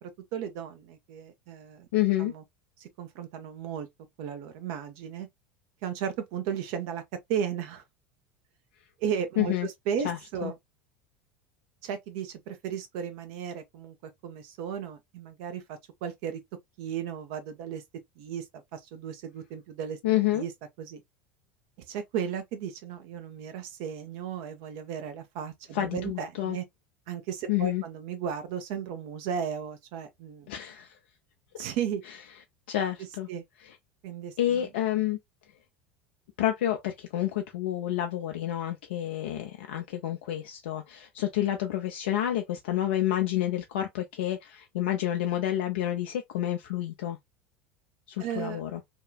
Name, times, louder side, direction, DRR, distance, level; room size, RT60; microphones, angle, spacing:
voice 1, 0.0-1.9 2.2-2.4 2.8-3.9 4.2-5.3 5.8-7.0 7.3-7.8 9.0-10.5 11.8-16.4 16.8-17.8 18.2-20.0 20.3-20.5 20.8-21.0 21.9-26.6 27.1-30.5 31.6-32.0 33.3-33.4 34.0-34.7 48.2-48.6, right 8 dB, 55° right, 0.7 m, -35 dB
voice 2, 1.9-2.3 9.4-9.7 10.0-10.5 20.0-20.4 25.7-26.6 27.5-27.8 30.5-31.0 32.7-33.3 33.6-33.7 34.4-35.2 36.4-47.2 48.1-48.8, left 13 dB, 65° left, 0.4 m, -29 dB
2.8 x 2.3 x 2.2 m
figure-of-eight pair, 75°, 6 cm